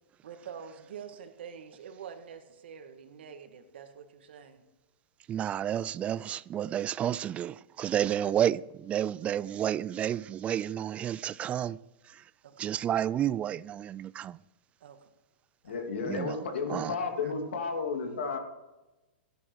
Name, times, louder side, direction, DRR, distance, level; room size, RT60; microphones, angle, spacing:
voice 1, 0.2-4.6 12.4-12.7 14.8-15.0 15.6-15.9 17.2-17.3, right 7 dB, 75° right, 1.8 m, -46 dB
voice 2, 5.3-11.8 12.1-12.2 12.6-14.4 16.1-16.4 16.7-17.0, right 10 dB, 20° right, 0.3 m, -31 dB
voice 3, 15.6-18.4, left 4 dB, 80° left, 2.8 m, -32 dB
14.0 x 11.0 x 4.6 m
hypercardioid pair, 135°, 6 cm